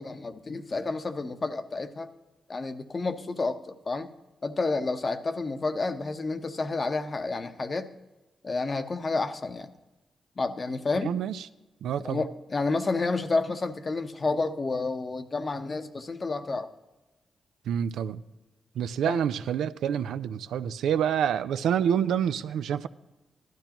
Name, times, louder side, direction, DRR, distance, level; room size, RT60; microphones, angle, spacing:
voice 1, 0.0-2.1 2.5-4.1 4.4-7.9 8.4-9.7 10.4-11.1 12.0-16.7 19.0-19.2, left 3 dB, 40° left, 0.9 m, -30 dB
voice 2, 11.0-11.5 11.8-12.2 17.7-18.2 18.8-22.9, right 9 dB, 85° right, 0.4 m, -27 dB
15.5 x 12.0 x 3.0 m
cardioid pair, 60°, 0 cm